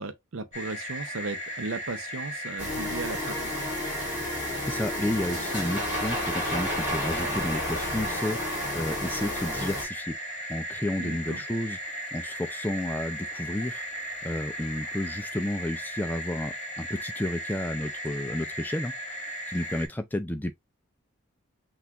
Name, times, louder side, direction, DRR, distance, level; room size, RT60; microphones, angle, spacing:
voice 1, 0.0-3.5 11.0-11.4, right 3 dB, 70° right, 0.6 m, -36 dB
sound 1, 0.5-19.9, equal, 30° left, 1.4 m, -37 dB
sound 2, 2.6-9.8, left 1 dB, 10° right, 2.7 m, -31 dB
voice 2, 4.6-10.2 10.5-20.5, left 1 dB, 10° left, 0.3 m, -32 dB
5.8 x 2.4 x 2.8 m
head